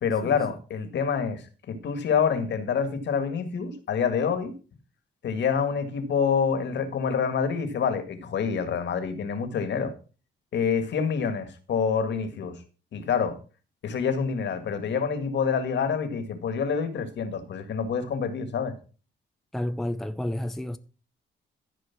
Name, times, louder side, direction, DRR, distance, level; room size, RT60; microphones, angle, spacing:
voice 1, 0.0-4.5 5.2-9.9 10.5-12.6 12.9-13.4 13.8-18.7, left 6 dB, 65° left, 2.0 m, -27 dB
voice 2, 19.5-20.8, left 1 dB, ahead, 0.7 m, -30 dB
14.5 x 5.0 x 6.0 m
cardioid pair, 90°, 20 cm